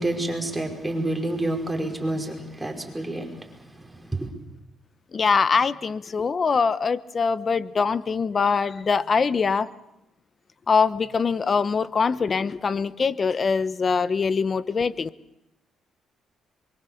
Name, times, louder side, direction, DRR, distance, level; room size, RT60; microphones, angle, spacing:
voice 1, 0.0-4.3, right 1 dB, 10° right, 5.2 m, -29 dB
voice 2, 5.1-9.7 10.7-15.1, left 5 dB, 40° left, 1.0 m, -23 dB
24.0 x 23.5 x 7.1 m
cardioid pair, 90°, 0 cm